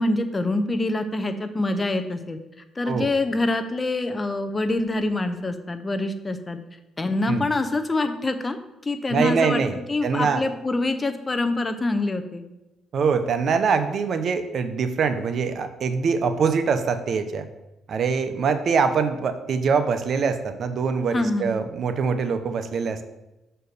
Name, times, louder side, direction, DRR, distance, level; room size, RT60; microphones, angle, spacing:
voice 1, 0.0-2.4 2.8-6.6 7.0-8.6 8.8-12.4 21.1-21.5, left 2 dB, 25° left, 8 dB, 0.8 m, -25 dB
voice 2, 9.1-10.4 12.9-17.5 17.9-23.0, right 5 dB, 60° right, 9 dB, 0.7 m, -24 dB
6.6 x 4.5 x 6.6 m, 0.97 s
cardioid pair, 90°, 0 cm